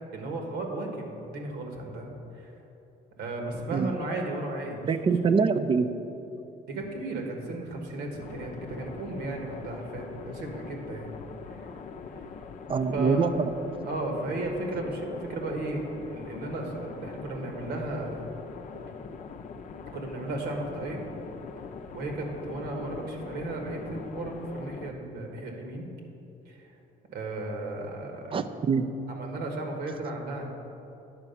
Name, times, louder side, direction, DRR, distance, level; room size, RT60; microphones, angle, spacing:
voice 1, 0.1-2.5 3.2-4.9 6.7-11.1 11.5-11.7 12.9-13.3 13.8-18.3 19.9-21.0 21.9-25.9 26.4-26.7 27.1-28.4 29.1-30.5, right 2 dB, 75° right, 2 dB, 1.6 m, -35 dB
voice 2, 4.8-5.9 12.7-13.5 28.3-28.9, right 5 dB, 30° right, 11 dB, 0.5 m, -24 dB
sound 1, 8.2-24.9, left 5 dB, 50° left, 0.6 m, -42 dB
10.0 x 4.8 x 6.9 m, 3.0 s
cardioid pair, 110°, 17 cm